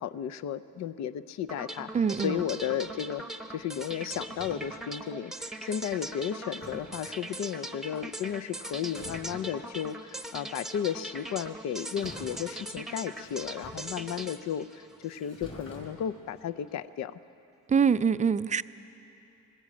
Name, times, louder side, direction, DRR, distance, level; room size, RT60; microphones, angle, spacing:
voice 1, 0.0-1.9 2.2-3.2 3.5-17.2, left 9 dB, 65° left, 15 dB, 0.6 m, -34 dB
sound 1, 1.5-15.6, right 1 dB, ahead, 0.9 m, -41 dB
sound 2, 1.9-3.1 3.5-4.9 6.2-6.3 6.6-7.3 8.0-8.5 8.9-9.6 10.6-10.7 12.0-12.7 13.1-14.4 14.9-16.5, left 1 dB, 40° left, 5.8 m, -49 dB
voice 2, 1.9-2.4 17.7-18.6, right 6 dB, 25° right, 14 dB, 0.4 m, -24 dB
20.5 x 15.5 x 8.5 m, 2.8 s
cardioid pair, 90°, 30 cm